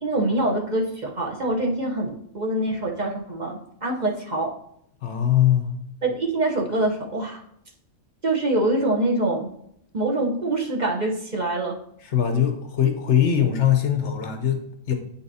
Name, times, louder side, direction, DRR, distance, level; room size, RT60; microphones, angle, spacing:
voice 1, 0.0-4.5 6.0-7.4 8.2-9.5 9.9-11.7, right 2 dB, 40° right, 0 dB, 1.0 m, -25 dB
voice 2, 5.0-5.7 12.1-14.9, left 10 dB, 65° left, 5 dB, 1.1 m, -21 dB
8.3 x 5.6 x 2.7 m, 0.74 s
omnidirectional pair, 1.3 m